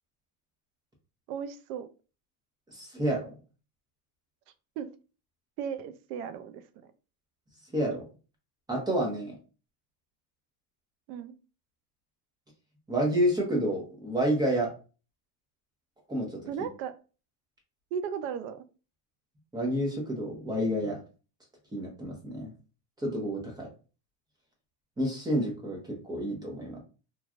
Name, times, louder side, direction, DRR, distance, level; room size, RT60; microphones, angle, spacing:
voice 1, 1.3-1.9 4.8-4.9 5.6-6.9 11.1-11.3 16.5-16.9 17.9-18.6, right 7 dB, 70° right, 0.5 m, -36 dB
voice 2, 2.7-3.3 7.7-8.0 8.7-9.3 12.9-14.7 16.1-16.4 19.5-21.0 21.7-22.5 23.0-23.7 25.0-26.8, equal, 10° right, 0.7 m, -29 dB
3.1 x 2.3 x 2.4 m
supercardioid pair, 145°, 47 cm